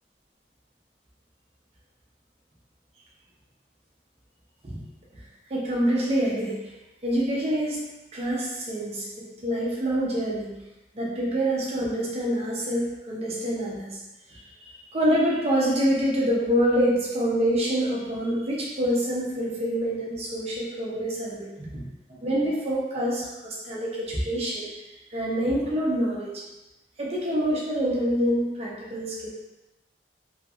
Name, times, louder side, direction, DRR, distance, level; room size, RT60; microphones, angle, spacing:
voice 1, 5.5-6.7 7.0-7.8 8.1-10.5 10.9-14.0 14.3-21.8 22.1-24.7 25.1-26.4 27.0-29.3, equal, 35° right, -4 dB, 0.6 m, -26 dB
2.8 x 2.7 x 2.4 m, 1.0 s
head